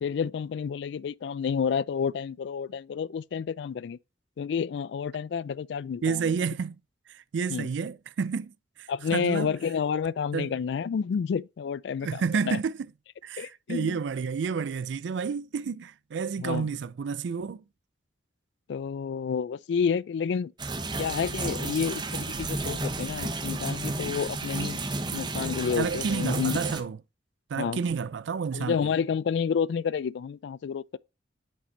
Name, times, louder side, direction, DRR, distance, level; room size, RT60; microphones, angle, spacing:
voice 1, 0.0-4.0 4.4-6.3 7.5-7.7 8.9-12.6 13.4-14.0 16.4-16.7 18.7-20.5 21.0-24.8 25.1-26.6 27.6-27.8 28.5-31.0, left 6 dB, 75° left, 0.3 m, -30 dB
voice 2, 6.0-6.8 7.1-8.5 8.8-9.5 10.3-10.5 12.0-12.8 13.2-17.6 25.8-27.0 27.5-28.9, right 5 dB, 80° right, 0.4 m, -30 dB
sound 1, 20.6-26.8, right 2 dB, 25° right, 0.8 m, -32 dB
6.6 x 5.4 x 3.8 m
head